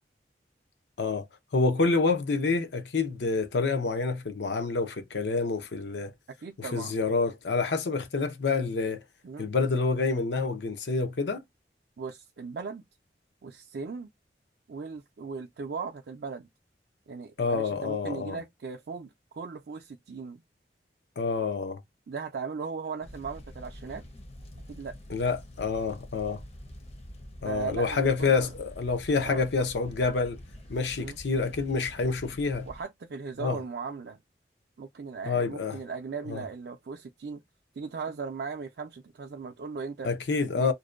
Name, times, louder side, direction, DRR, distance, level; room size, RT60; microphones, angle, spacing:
voice 1, 1.5-6.1 6.6-9.0 9.4-11.4 17.4-18.4 21.2-21.8 25.1-26.4 27.4-30.4 30.7-32.7 33.4-33.6 35.2-35.8 36.3-36.4 40.0-40.7, left 4 dB, 80° left, 0.6 m, -27 dB
voice 2, 6.4-7.0 9.2-9.5 12.0-12.8 13.4-14.1 14.7-16.5 17.1-20.4 22.1-24.0 24.7-25.0 27.4-28.5 29.2-29.5 31.0-31.2 32.7-34.2 34.8-37.4 37.8-40.1 40.5-40.7, right 5 dB, 65° right, 0.4 m, -38 dB
sound 1, 23.0-32.8, equal, 35° left, 0.6 m, -46 dB
2.6 x 2.1 x 2.3 m
head